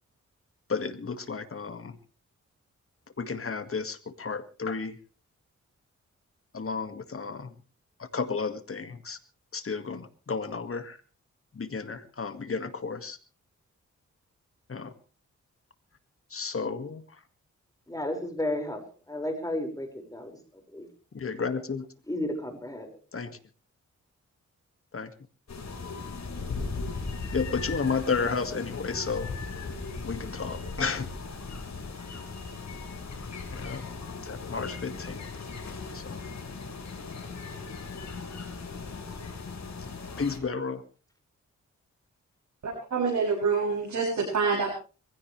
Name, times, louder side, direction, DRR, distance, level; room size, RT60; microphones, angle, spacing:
voice 1, 0.7-2.0 3.2-5.0 6.5-7.5 8.0-9.2 9.5-11.0 11.5-13.2 14.7-14.9 16.3-17.2 21.1-21.9 23.1-23.4 24.9-25.1 27.3-29.3 30.0-31.1 31.9-32.0 33.5-33.8 34.2-35.2 35.9-36.2 40.2-40.8, left 5 dB, 50° left, 2.1 m, -32 dB
voice 2, 17.9-18.8 19.1-20.3 20.7-20.9 22.1-22.9, left 1 dB, 10° left, 5.7 m, -32 dB
sound 1, 25.5-40.4, left 4 dB, 65° left, 4.8 m, -38 dB
voice 3, 42.9-44.7, right 5 dB, 70° right, 7.7 m, -26 dB
23.0 x 16.0 x 3.4 m
cardioid pair, 70°, 29 cm